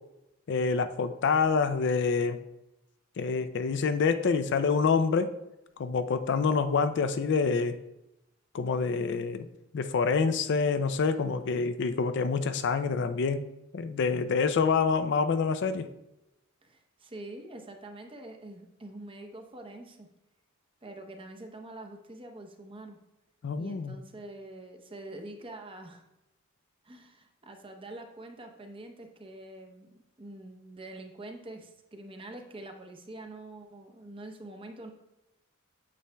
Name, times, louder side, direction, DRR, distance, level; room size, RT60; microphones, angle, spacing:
voice 1, 0.5-2.4 3.2-5.3 5.8-7.8 8.5-9.5 9.7-13.5 13.7-15.9 23.4-24.0, left 5 dB, 55° left, 10 dB, 0.4 m, -27 dB
voice 2, 16.6-20.1 20.8-23.0 23.6-26.0 26.8-29.9 30.2-34.9, right 2 dB, 25° right, 4 dB, 0.7 m, -45 dB
8.4 x 7.2 x 2.2 m, 0.90 s
head